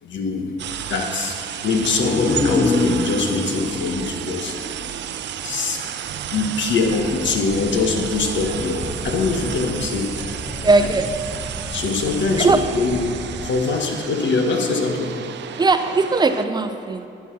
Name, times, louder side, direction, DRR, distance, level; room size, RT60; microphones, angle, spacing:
voice 1, 0.0-0.5 0.9-4.6 5.4-6.0 6.3-10.5 10.8-10.9 11.7-13.0 13.4-15.1, left 4 dB, 70° left, 3 dB, 1.4 m, -23 dB
sound 1, 0.6-16.5, right 10 dB, 65° right, 0.5 m, -32 dB
sound 2, 1.8-5.5 5.9-6.0, left 3 dB, 30° left, 0.7 m, -25 dB
sound 3, 6.9-13.5, equal, 15° left, 1.2 m, -34 dB
voice 2, 10.6-11.2 12.4-12.7 15.6-17.1, right 3 dB, 20° right, 9 dB, 0.6 m, -18 dB
11.0 x 7.3 x 6.1 m, 2.6 s
cardioid pair, 90°, 20 cm